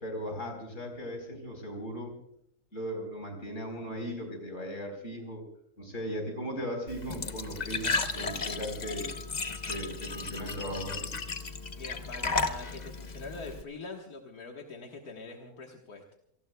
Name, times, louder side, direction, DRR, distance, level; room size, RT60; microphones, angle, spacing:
voice 1, 0.0-2.2 2.7-5.4 5.8-9.1 9.7-11.1, equal, 55° left, 3 dB, 4.6 m, -37 dB
Glass / Trickle dribble / Fill (with liquid), 6.9-13.6, left 4 dB, 35° left, 0.9 m, -34 dB
voice 2, 11.8-16.0, left 3 dB, 80° left, 1 dB, 2.0 m, -43 dB
30.0 x 19.0 x 2.3 m, 0.72 s
omnidirectional pair, 1.6 m